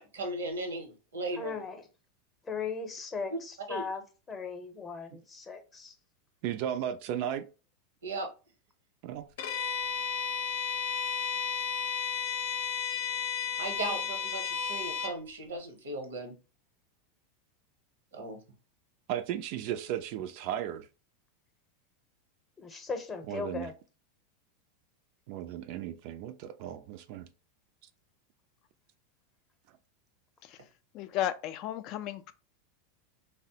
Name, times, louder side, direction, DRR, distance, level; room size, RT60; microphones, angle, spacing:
voice 1, 0.0-1.6 3.3-3.4 3.7-3.9 8.0-8.3 13.6-16.4 18.1-18.4, right 2 dB, 90° right, 0.8 m, -37 dB
voice 2, 1.4-1.8 2.4-4.0 4.3-5.9 13.8-14.0 22.6-23.7, left 5 dB, 20° left, 0.7 m, -38 dB
voice 3, 6.4-7.5 9.0-9.3 19.1-20.9 23.3-23.7 25.3-27.3, right 10 dB, 60° right, 0.3 m, -35 dB
Bowed string instrument, 9.4-15.2, left 7 dB, 80° left, 0.6 m, -33 dB
voice 4, 30.9-32.3, left 12 dB, 50° left, 0.3 m, -33 dB
3.3 x 2.0 x 2.7 m
hypercardioid pair, 105°, 0 cm